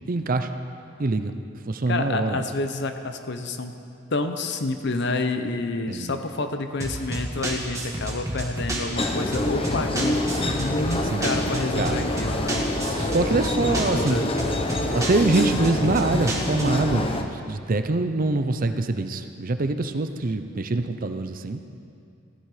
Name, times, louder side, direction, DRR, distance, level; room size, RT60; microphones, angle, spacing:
voice 1, 0.1-0.5 1.0-1.3 1.7-2.4 5.9-6.1 11.1-11.3 11.8-12.0 12.9-14.3 14.9-21.6, right 2 dB, 45° right, 8 dB, 0.6 m, -24 dB
voice 2, 1.9-3.7 4.1-10.3 10.6-12.6 13.6-14.2, left 2 dB, 60° left, 7 dB, 0.8 m, -29 dB
sound 1, 6.8-16.9, right 1 dB, 15° right, 1.6 m, -31 dB
sound 2, 9.0-17.2, left 1 dB, 30° left, 0.8 m, -26 dB
15.5 x 11.0 x 5.0 m, 2.5 s
head